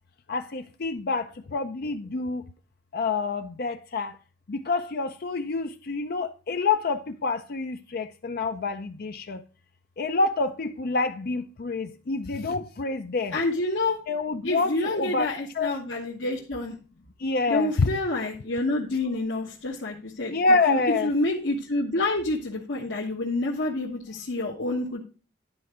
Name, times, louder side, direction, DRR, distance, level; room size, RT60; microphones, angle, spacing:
voice 1, 0.3-2.4 2.9-4.2 4.5-9.4 10.0-13.4 14.1-15.7 17.2-17.9 20.3-21.1, left 3 dB, 55° left, 0.5 m, -27 dB
voice 2, 13.3-14.0 14.4-16.8 17.5-20.4 20.7-25.0, left 2 dB, 70° left, 1.2 m, -28 dB
10.5 x 4.6 x 4.9 m
head